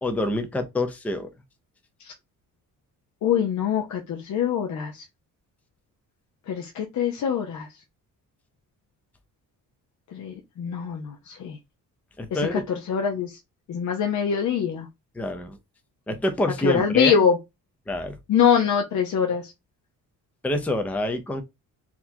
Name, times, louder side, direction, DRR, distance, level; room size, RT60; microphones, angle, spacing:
voice 1, 0.0-1.3 12.2-12.6 15.1-15.6 16.1-17.2 17.9-18.2 20.4-21.4, left 1 dB, 5° left, 0.5 m, -26 dB
voice 2, 3.2-5.0 6.5-7.7 10.1-11.6 12.3-12.6 12.9-13.4 13.7-14.9 16.6-17.4 18.3-19.5, left 7 dB, 55° left, 0.7 m, -24 dB
4.1 x 2.9 x 2.7 m
cardioid pair, 160°, 34 cm